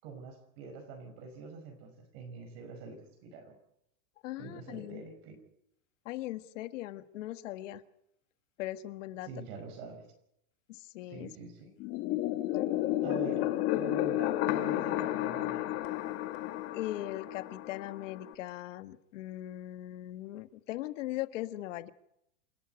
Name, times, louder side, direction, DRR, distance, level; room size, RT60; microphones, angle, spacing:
voice 1, 0.0-3.6 4.4-5.4 9.2-10.0 11.1-11.7 13.0-15.7, right 4 dB, 50° right, 5 dB, 5.4 m, -45 dB
voice 2, 4.2-5.0 6.0-7.8 8.6-9.3 10.7-11.3 16.7-21.9, left 15 dB, 65° left, 11 dB, 1.5 m, -39 dB
sound 1, 11.8-18.3, left 14 dB, 35° left, 1.4 m, -32 dB
27.5 x 12.0 x 9.3 m, 0.79 s
supercardioid pair, 165°, 40 cm